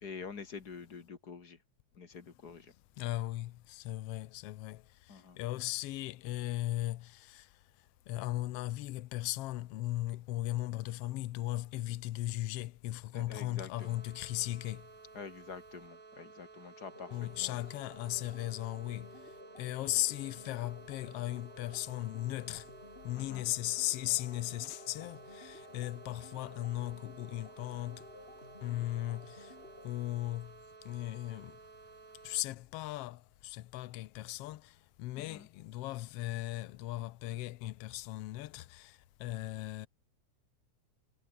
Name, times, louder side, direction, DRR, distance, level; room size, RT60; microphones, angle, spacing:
voice 1, 0.0-1.6 2.0-2.7 5.1-5.4 13.1-14.0 15.1-17.5 23.1-23.4 35.2-35.5, left 5 dB, 35° left, 2.1 m, -47 dB
voice 2, 3.0-14.9 17.1-22.7 23.0-28.1 28.6-31.6 32.2-39.9, left 16 dB, 75° left, 1.4 m, -37 dB
sound 1, 13.7-32.4, right 4 dB, 30° right, 2.7 m, -55 dB
sound 2, 16.9-29.9, left 2 dB, 20° left, 3.9 m, -54 dB
omnidirectional pair, 3.5 m